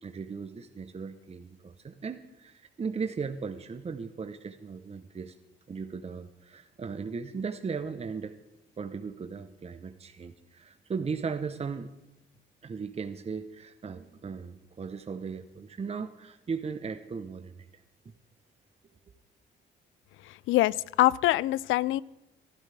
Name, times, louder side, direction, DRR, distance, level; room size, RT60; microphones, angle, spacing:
voice 1, 0.0-5.3 5.7-8.3 8.8-11.9 12.6-17.6, right 5 dB, 30° right, 8 dB, 0.9 m, -37 dB
voice 2, 20.5-22.0, left 16 dB, 80° left, 21 dB, 0.4 m, -24 dB
22.5 x 12.0 x 3.4 m, 0.96 s
cardioid pair, 90°, 20 cm